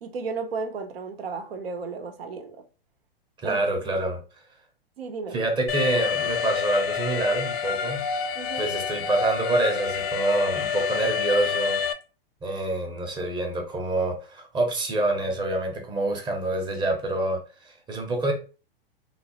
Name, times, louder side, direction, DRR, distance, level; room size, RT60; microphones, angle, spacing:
voice 1, 0.0-2.6 3.4-3.6 5.0-5.4 8.4-8.7, right 4 dB, 85° right, 0.7 m, -33 dB
voice 2, 3.4-4.2 5.3-8.0 8.6-11.8 12.4-18.3, right 2 dB, 15° right, 0.6 m, -26 dB
Alarm, 5.7-11.9, left 7 dB, 75° left, 0.6 m, -28 dB
3.2 x 2.0 x 2.9 m
hypercardioid pair, 125°, 29 cm